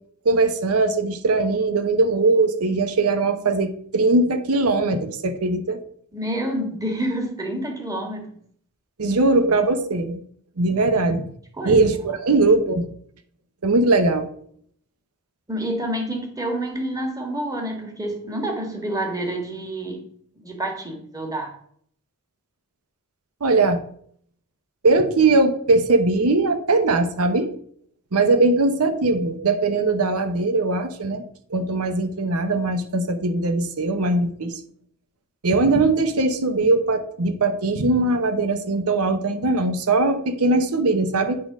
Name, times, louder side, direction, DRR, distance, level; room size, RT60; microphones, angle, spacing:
voice 1, 0.2-5.8 9.0-10.2 10.6-11.3 11.6-12.9 13.6-14.3 23.4-23.8 24.8-27.5 28.1-31.2 31.5-34.6 35.4-41.4, right 3 dB, 85° right, 9 dB, 0.8 m, -20 dB
voice 2, 6.1-8.2 10.9-11.0 11.6-11.8 15.5-20.0 20.4-21.5, right 1 dB, 15° right, 2 dB, 1.6 m, -28 dB
8.5 x 3.8 x 6.1 m, 0.62 s
head